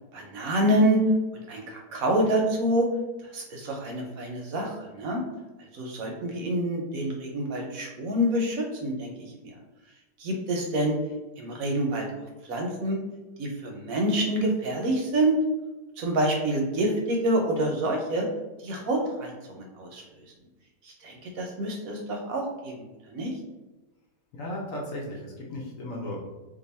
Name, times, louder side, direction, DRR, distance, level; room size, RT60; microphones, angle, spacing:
voice 1, 0.1-1.0 1.5-2.9 3.2-5.2 5.7-9.5 10.2-10.9 11.4-12.1 12.4-13.0 13.4-15.4 16.0-18.3 18.6-20.0 20.8-22.8 23.1-23.3, right 1 dB, 65° right, 1 dB, 0.9 m, -27 dB
voice 2, 24.3-26.2, left 1 dB, 65° left, -2 dB, 0.9 m, -35 dB
2.7 x 2.5 x 4.0 m, 1.1 s
omnidirectional pair, 1.7 m